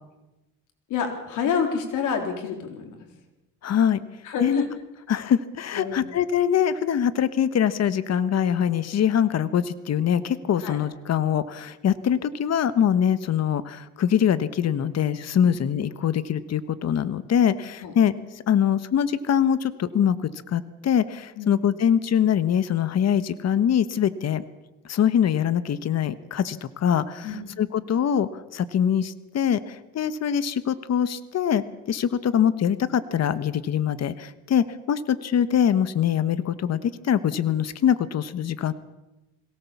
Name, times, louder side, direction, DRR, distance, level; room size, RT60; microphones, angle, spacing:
voice 1, 0.9-2.9 4.2-4.7 5.7-6.1 10.6-10.8 15.4-15.6 17.8-17.9 21.4-21.6 27.2-27.6, left 6 dB, 90° left, 4 dB, 4.0 m, -28 dB
voice 2, 3.6-4.0 4.4-4.6 5.1-20.2 20.5-24.4 24.8-38.7, left 9 dB, 60° left, 14 dB, 1.3 m, -23 dB
22.0 x 18.0 x 7.2 m, 1.0 s
cardioid pair, 90°, 30 cm